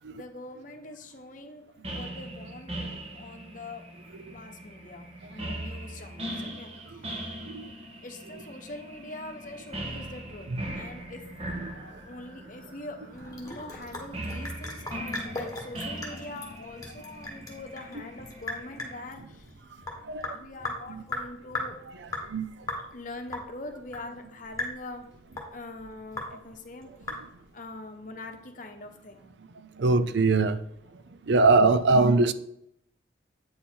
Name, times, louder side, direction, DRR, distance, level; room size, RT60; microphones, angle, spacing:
voice 1, 0.1-3.8 4.3-7.3 8.0-11.3 12.0-19.5 20.3-21.8 22.9-25.1 25.5-26.9 27.5-29.3, left 2 dB, 40° left, 0.9 m, -43 dB
sound 1, 1.8-19.1, right 1 dB, 30° right, 1.3 m, -40 dB
Sink (filling or washing) / Drip, 13.1-27.6, left 2 dB, 20° left, 1.5 m, -39 dB
voice 2, 20.0-20.3 20.9-21.0 22.3-22.5 29.8-30.6 31.3-32.3, right 3 dB, 65° right, 0.5 m, -21 dB
8.7 x 5.5 x 4.4 m
head